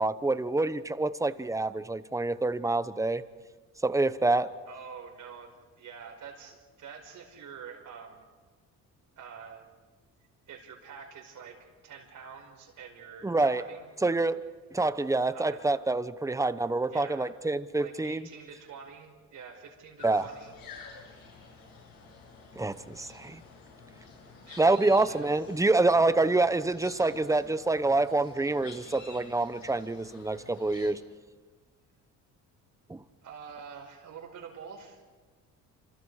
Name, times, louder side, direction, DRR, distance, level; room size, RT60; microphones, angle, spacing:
voice 1, 0.0-3.2 3.8-4.5 13.2-13.6 14.0-14.4 14.7-18.2 20.0-20.3 22.6-23.4 24.6-31.0 32.9-33.0, right 2 dB, 10° right, 13 dB, 0.9 m, -26 dB
voice 2, 4.7-8.3 9.2-9.7 10.5-13.9 15.3-15.6 16.9-17.3 17.8-20.6 24.5-24.8 25.1-25.2 33.2-35.0, right 6 dB, 60° right, 3 dB, 5.4 m, -46 dB
sound 1, 20.0-30.9, left 4 dB, 80° left, 8.0 m, -50 dB
29.5 x 27.0 x 4.9 m, 1.4 s
cardioid pair, 110°, 34 cm